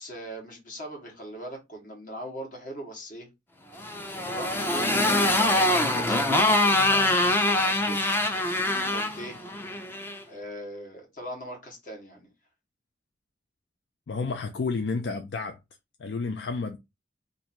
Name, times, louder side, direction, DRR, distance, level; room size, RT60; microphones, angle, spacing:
voice 1, 0.0-3.3 3.7-3.8 4.2-7.1 7.4-8.2 8.6-9.4 10.3-12.3, equal, 50° left, 1.5 m, -40 dB
Motorcycle, 3.8-10.2, left 1 dB, 15° left, 0.5 m, -24 dB
voice 2, 14.1-15.6 16.0-16.8, left 4 dB, 75° left, 0.4 m, -30 dB
2.9 x 2.6 x 4.3 m
head